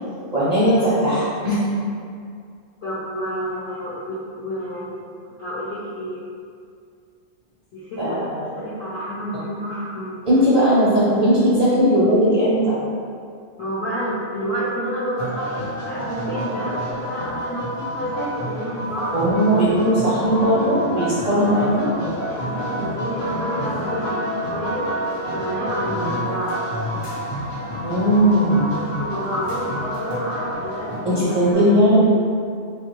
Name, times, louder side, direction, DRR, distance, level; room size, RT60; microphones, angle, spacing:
voice 1, 0.3-1.6 8.0-8.5 10.2-12.8 19.1-21.9 25.8-26.1 27.8-28.7 31.0-32.1, equal, 45° right, -11 dB, 0.5 m, -18 dB
voice 2, 2.8-6.2 7.7-8.2 8.6-10.2 10.4-10.5 13.6-19.2 19.5-19.7 21.3-21.5 21.9-24.9 25.3-26.6 28.7-31.7, equal, 60° left, -10 dB, 0.9 m, -29 dB
sound 1, 15.2-31.5, equal, 35° left, 0.4 m, -29 dB
3.4 x 2.4 x 2.9 m, 2.3 s
omnidirectional pair, 1.3 m